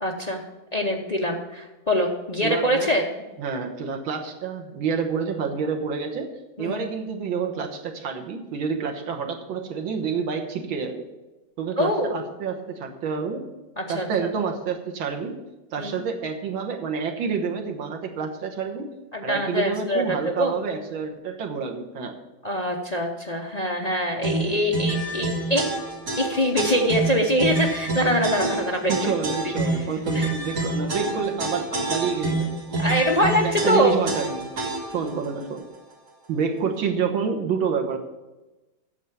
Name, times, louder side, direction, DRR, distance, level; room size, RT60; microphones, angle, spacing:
voice 1, 0.0-0.4 0.7-3.1 6.6-6.8 11.8-12.2 13.8-14.3 15.8-16.0 19.1-20.5 22.4-25.7 26.2-28.9 30.1-30.3 31.7-31.8 32.8-34.0, equal, 50° left, 1 dB, 0.4 m, -24 dB
voice 2, 2.4-2.9 3.4-6.3 6.6-11.0 11.6-13.5 13.9-15.4 15.7-18.9 19.2-22.2 28.9-32.6 33.4-34.5 34.9-35.6 36.3-38.0, right 6 dB, 80° right, 3 dB, 2.0 m, -28 dB
sound 1, 24.2-35.1, right 2 dB, 55° right, 2.6 m, -27 dB
9.2 x 6.9 x 7.2 m, 1.1 s
omnidirectional pair, 2.1 m